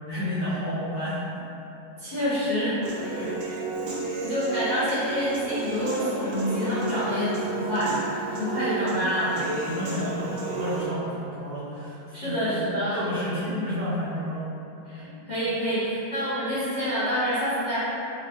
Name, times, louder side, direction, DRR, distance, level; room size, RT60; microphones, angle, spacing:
voice 1, 0.1-1.2 2.2-2.3 3.1-3.3 9.6-12.6 12.9-14.4, equal, 45° right, -13 dB, 0.7 m, -31 dB
voice 2, 2.0-3.2 4.2-9.4 12.1-13.0 14.9-17.8, equal, 40° left, -14 dB, 0.7 m, -27 dB
Human voice / Piano, 2.8-10.8, right 4 dB, 80° right, 1.2 m, -32 dB
4.0 x 2.3 x 2.7 m, 2.9 s
omnidirectional pair, 1.8 m